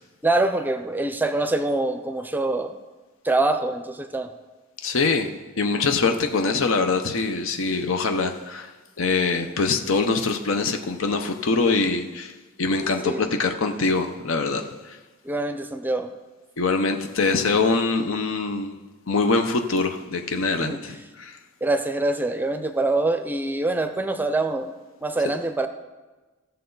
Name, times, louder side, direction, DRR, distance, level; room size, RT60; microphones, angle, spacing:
voice 1, 0.2-2.7 3.2-4.3 13.0-13.2 15.2-16.1 20.6-21.0 21.6-24.7 25.0-25.7, right 2 dB, 10° right, 8 dB, 0.5 m, -24 dB
voice 2, 4.8-5.3 5.6-8.7 9.0-12.3 12.6-15.0 16.6-18.8 19.1-21.4, left 4 dB, 70° left, 6 dB, 0.7 m, -23 dB
16.5 x 6.7 x 3.9 m, 1.2 s
head